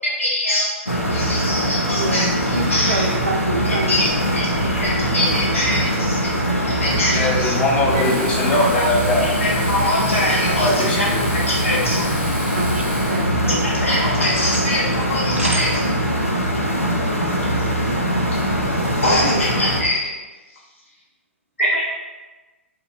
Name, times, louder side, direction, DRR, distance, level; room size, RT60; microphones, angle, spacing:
voice 1, 0.0-0.7 1.1-3.1 3.6-6.3 6.6-7.5 7.9-8.0 8.5-8.9 9.2-11.1 11.3-12.1 13.8-15.7 18.8-20.1 21.6-21.9, left 1 dB, 75° left, -7 dB, 1.0 m, -23 dB
sound 1, 0.9-19.8, equal, 90° left, 0.4 m, -22 dB
voice 2, 1.8-4.2 5.3-5.4 10.5-10.7 12.4-13.8 14.1-14.6 15.4-15.8 19.0-19.5, right 1 dB, 75° right, 2 dB, 0.3 m, -28 dB
voice 3, 7.1-9.4 10.8-11.3, left 2 dB, 15° left, -2 dB, 0.4 m, -21 dB
sound 2, 7.8-13.4, left 1 dB, 50° left, 0.8 m, -34 dB
2.8 x 2.0 x 2.4 m, 1.2 s
figure-of-eight pair, 115°, 7 cm